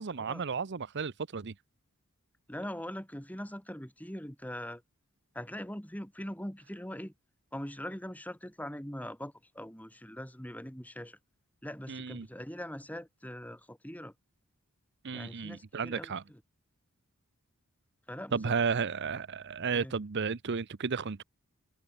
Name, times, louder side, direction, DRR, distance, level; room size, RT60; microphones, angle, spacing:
voice 1, 0.0-1.5 11.9-12.3 15.0-16.2 18.3-21.2, right 5 dB, 50° right, 0.7 m, -33 dB
voice 2, 2.5-4.8 5.3-7.1 7.5-11.2 11.6-14.1 15.1-16.4 18.1-18.6 19.7-19.9, equal, 5° left, 6.7 m, -42 dB
head